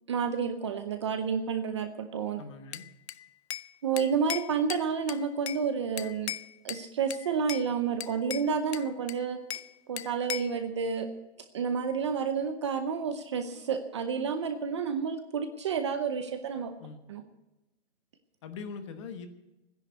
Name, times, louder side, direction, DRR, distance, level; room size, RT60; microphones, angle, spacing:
voice 1, 0.1-2.4 3.8-6.3 6.6-9.4 9.9-11.1 11.5-16.7 17.1-17.2, right 6 dB, 25° right, 9 dB, 0.6 m, -30 dB
voice 2, 2.4-2.8 16.8-17.0 18.4-19.3, left 5 dB, 25° left, 9 dB, 1.2 m, -42 dB
Bell / Glass, 2.7-3.7 4.0-5.6 6.0-6.8 7.1-7.7 8.0-9.7 10.0-10.6, left 11 dB, 75° left, 0.7 m, -38 dB
14.5 x 10.5 x 8.0 m, 0.98 s
hypercardioid pair, 175°, 33 cm